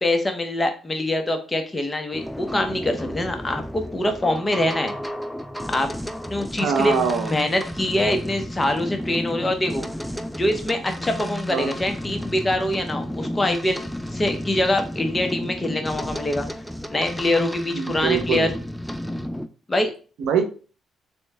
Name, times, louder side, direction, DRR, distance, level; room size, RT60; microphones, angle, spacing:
voice 1, 0.0-4.9 5.7-5.9 6.3-6.9 7.2-9.9 10.3-16.5 16.9-18.5 19.7-19.9, left 1 dB, 20° left, 6 dB, 0.8 m, -24 dB
sound 1, 2.1-19.5, equal, ahead, 0.3 m, -32 dB
voice 2, 6.6-7.3 11.5-11.7 17.7-18.5 20.2-20.4, right 6 dB, 85° right, 7 dB, 0.7 m, -23 dB
3.1 x 3.1 x 3.3 m, 0.37 s
cardioid pair, 90°, 0 cm